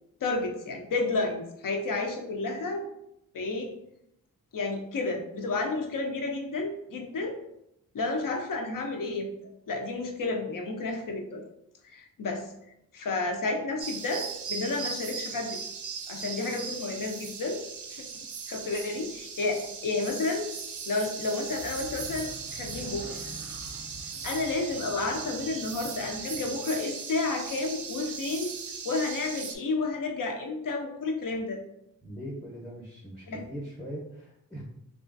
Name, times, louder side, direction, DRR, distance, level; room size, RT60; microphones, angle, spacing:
voice 1, 0.2-2.9 3.3-3.7 4.5-7.4 7.9-9.3 9.7-11.4 11.8-12.5 12.9-15.6 16.1-17.6 17.9-18.0 18.5-20.5 20.9-23.2 24.2-28.5 28.8-31.6 33.3-33.4, left 3 dB, 65° left, 3 dB, 0.6 m, -31 dB
sound 1, 13.8-29.5, right 6 dB, 55° right, 0.4 m, -38 dB
sound 2, 21.5-26.6, equal, 90° left, 1.2 m, -47 dB
voice 2, 32.0-34.6, equal, ahead, -3 dB, 0.7 m, -40 dB
2.9 x 2.4 x 2.5 m, 0.80 s
wide cardioid pair, 85°, 35 cm